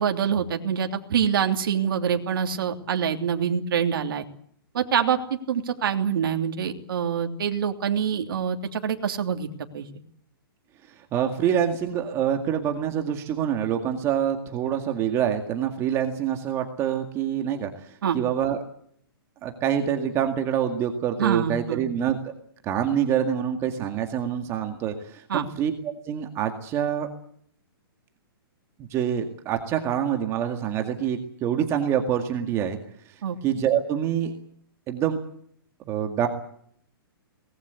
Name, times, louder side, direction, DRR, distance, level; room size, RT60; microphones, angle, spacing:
voice 1, 0.0-4.3 4.7-9.5 9.7-9.9 18.0-18.2 21.2-21.8 25.3-25.4 33.2-33.4, right 8 dB, 65° right, 4 dB, 3.1 m, -25 dB
voice 2, 11.0-18.6 19.4-22.2 22.6-27.1 28.9-32.8 33.1-34.3 34.9-35.2 35.9-36.3, right 9 dB, 20° right, 5 dB, 2.0 m, -26 dB
23.5 x 19.5 x 8.2 m, 0.65 s
hypercardioid pair, 160°, 13 cm